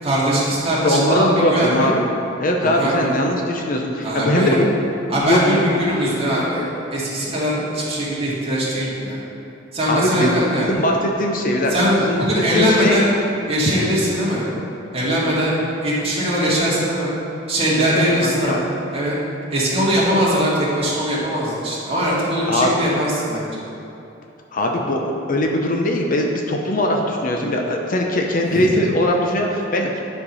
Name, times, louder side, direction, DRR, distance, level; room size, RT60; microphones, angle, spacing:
voice 1, 0.0-1.9 2.6-3.1 4.0-4.6 5.1-9.2 9.7-10.7 11.7-13.1 13.5-14.4 14.9-15.6 15.8-17.1 17.5-19.2 19.5-23.6 28.5-28.7, equal, 30° right, -7 dB, 2.1 m, -21 dB
voice 2, 0.8-2.0 2.4-4.7 5.2-5.6 9.9-10.3 10.7-11.7 12.0-12.2 12.5-13.0 17.8-18.6 22.5-22.7 24.5-30.0, left 1 dB, 45° left, 1 dB, 0.7 m, -20 dB
9.8 x 4.5 x 5.5 m, 2.8 s
head